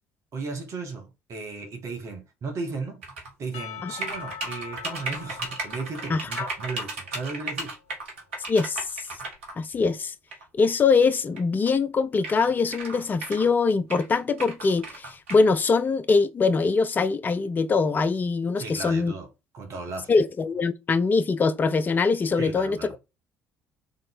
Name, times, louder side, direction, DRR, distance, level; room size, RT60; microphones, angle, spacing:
voice 1, 0.3-3.0 3.4-7.7 18.6-20.1 22.4-23.0, right 4 dB, 50° right, 1.3 m, -35 dB
sound 1, 3.0-3.3 4.0-9.5 10.3-10.4 11.4-11.5 11.7-11.8 12.2-13.5 13.9-15.5, right 2 dB, 75° right, 1.2 m, -35 dB
Percussion / Church bell, 3.5-7.9, left 9 dB, 70° left, 0.7 m, -43 dB
voice 2, 6.1-6.5 8.5-8.9 9.6-10.1 10.5-19.1 20.1-22.8, left 4 dB, 30° left, 0.4 m, -23 dB
3.7 x 3.1 x 3.5 m
figure-of-eight pair, 55°, 7 cm